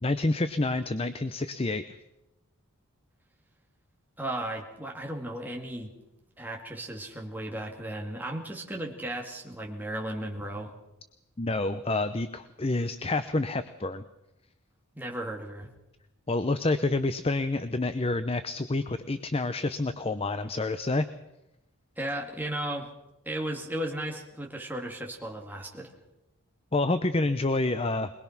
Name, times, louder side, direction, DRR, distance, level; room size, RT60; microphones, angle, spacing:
voice 1, 0.0-1.8 11.4-14.0 16.3-21.1 26.7-28.1, left 2 dB, 25° left, 11 dB, 0.7 m, -28 dB
voice 2, 4.2-5.9 6.4-10.7 14.9-15.7 22.0-22.9 23.3-25.9, right 1 dB, 10° right, 0 dB, 2.5 m, -35 dB
22.0 x 21.0 x 6.0 m, 0.91 s
head